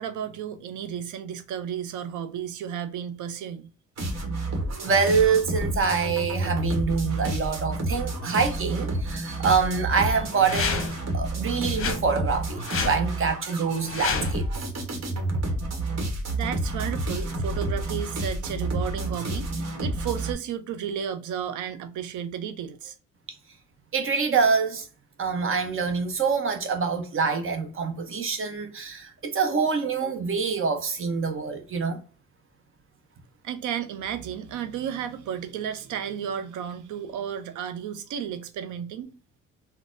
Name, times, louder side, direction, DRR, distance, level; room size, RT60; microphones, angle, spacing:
voice 1, 0.0-3.7 16.3-23.0 33.4-39.1, right 8 dB, 80° right, 0.6 m, -33 dB
sound 1, 4.0-20.3, right 2 dB, 60° right, 1.1 m, -30 dB
voice 2, 4.8-14.4 23.9-24.9 25.2-32.0, right 5 dB, 45° right, 0.8 m, -25 dB
sound 2, 10.3-11.1 11.7-12.0 12.6-13.0 13.8-14.4, left 5 dB, 45° left, 0.7 m, -29 dB
4.0 x 2.1 x 2.5 m
cardioid pair, 90°, 30 cm